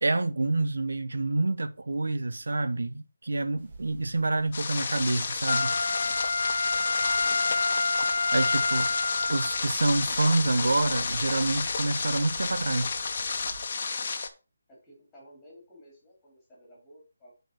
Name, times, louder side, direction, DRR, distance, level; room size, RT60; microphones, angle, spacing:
voice 1, 0.0-5.8 8.3-8.9 9.3-12.9, right 2 dB, 85° right, 0.8 m, -27 dB
sound 1, 3.6-13.7, right 3 dB, 35° right, 1.5 m, -48 dB
sound 2, 4.5-14.3, left 4 dB, 40° left, 1.1 m, -31 dB
Wind instrument woodwind instrument, 5.4-9.7 10.2-10.3, left 3 dB, 85° left, 0.7 m, -27 dB
voice 2, 7.1-7.5 14.7-17.3, equal, 10° left, 3.9 m, -54 dB
7.7 x 4.6 x 6.3 m
figure-of-eight pair, 170°, 0 cm